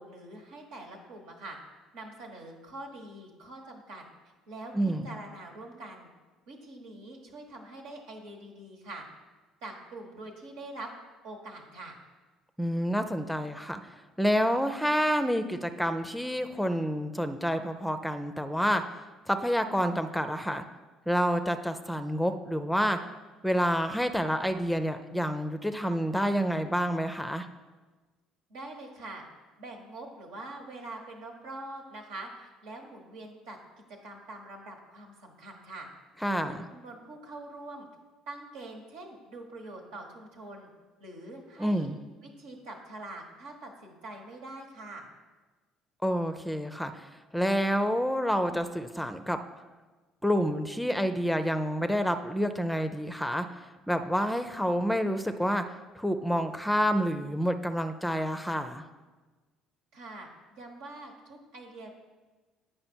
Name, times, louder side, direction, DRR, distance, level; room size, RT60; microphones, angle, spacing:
voice 1, 0.0-1.6 1.9-4.0 4.5-6.1 6.5-9.0 9.6-10.9 11.2-12.0 28.5-29.2 29.6-33.6 34.0-35.9 36.2-37.9 38.3-40.7 41.0-41.9 42.2-45.1 59.9-61.9, right 2 dB, 80° right, 1 dB, 1.4 m, -44 dB
voice 2, 4.7-5.1 12.6-18.8 19.3-20.6 21.1-23.0 23.4-27.5 36.2-36.7 41.6-42.0 46.0-49.4 50.2-53.5 53.9-55.6 55.9-58.8, equal, 5° left, 9 dB, 0.5 m, -28 dB
8.6 x 5.1 x 4.4 m, 1.3 s
supercardioid pair, 70°, 0 cm